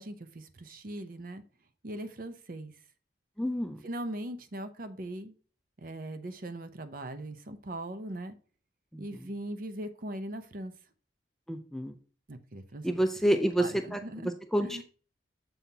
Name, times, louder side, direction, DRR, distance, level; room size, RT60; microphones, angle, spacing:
voice 1, 0.0-1.4 1.8-2.7 3.8-5.3 5.8-8.4 9.0-10.7 12.3-13.0 13.2-14.3 14.6-14.8, right 1 dB, 50° right, 10 dB, 0.7 m, -40 dB
voice 2, 3.4-3.8 8.9-9.0 11.5-11.9 12.8-14.0 14.5-14.8, right 1 dB, ahead, 6 dB, 0.4 m, -28 dB
7.0 x 5.6 x 2.8 m, 0.39 s
head